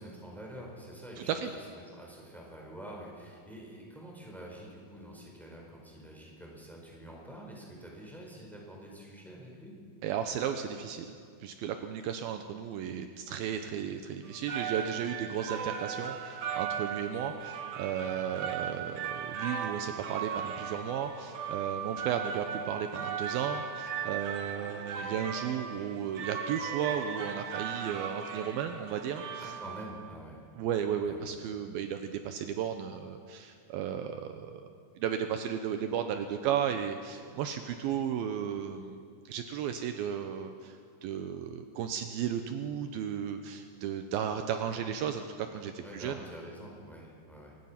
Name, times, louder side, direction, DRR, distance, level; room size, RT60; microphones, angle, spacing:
voice 1, 0.0-9.8 29.4-30.5 31.0-31.3 45.8-47.6, right 1 dB, ahead, -1 dB, 4.1 m, -47 dB
voice 2, 1.2-1.5 10.0-11.1 11.4-29.5 30.6-34.7 35.0-39.0 39.3-46.3, right 8 dB, 75° right, 7 dB, 2.6 m, -34 dB
sound 1, 14.2-30.1, right 7 dB, 60° right, 1.9 m, -37 dB
23.5 x 19.0 x 5.8 m, 2.2 s
omnidirectional pair, 4.5 m